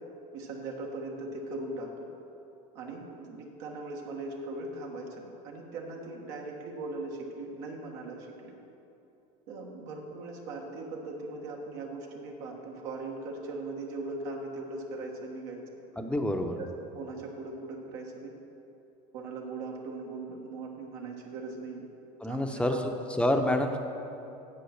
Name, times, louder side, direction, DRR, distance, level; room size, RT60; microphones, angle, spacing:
voice 1, 0.3-2.1 2.7-8.5 9.5-15.6 16.6-18.3 19.1-21.8 22.3-22.8, right 2 dB, 75° right, 0 dB, 1.4 m, -39 dB
voice 2, 16.0-16.6 22.2-23.8, left 1 dB, 5° left, 5 dB, 0.7 m, -28 dB
8.6 x 7.6 x 5.8 m, 2.9 s
supercardioid pair, 115°, 19 cm